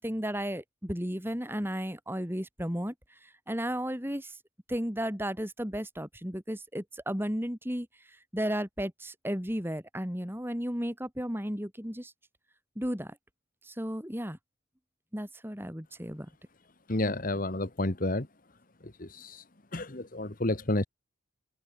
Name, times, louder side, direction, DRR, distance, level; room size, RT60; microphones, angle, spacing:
voice 1, 0.0-2.9 3.2-4.4 4.7-7.9 8.3-12.1 12.8-13.2 13.6-14.4 15.1-16.3, equal, 10° right, 4.6 m, -34 dB
voice 2, 16.9-18.3 18.8-19.4 19.7-20.9, left 2 dB, 45° left, 1.5 m, -30 dB
open air
head